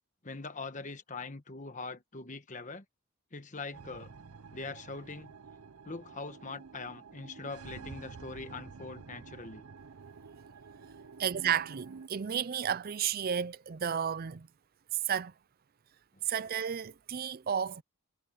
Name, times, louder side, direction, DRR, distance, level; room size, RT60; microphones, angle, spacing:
voice 1, 0.2-2.8 3.3-4.1 4.5-5.3 5.8-9.6 16.2-16.3, left 3 dB, 35° left, 1.2 m, -42 dB
sound 1, 3.7-12.1, right 5 dB, 90° right, 0.7 m, -49 dB
voice 2, 11.2-14.5 15.1-15.3 16.3-17.8, right 8 dB, 45° right, 0.5 m, -32 dB
head